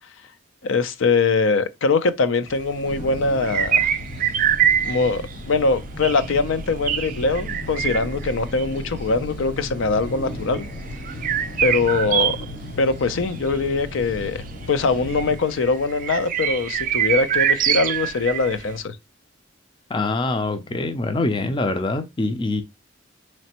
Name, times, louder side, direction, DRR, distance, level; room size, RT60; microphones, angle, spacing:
voice 1, 0.6-3.9 4.8-10.6 11.6-12.4 12.8-19.0, left 3 dB, 75° left, 0.5 m, -22 dB
sound 1, 2.5-18.8, right 9 dB, 40° right, 0.4 m, -25 dB
sound 2, 2.8-15.4, left 1 dB, 50° left, 1.1 m, -35 dB
voice 2, 19.9-22.6, left 2 dB, 25° left, 0.4 m, -24 dB
4.1 x 3.1 x 2.9 m
head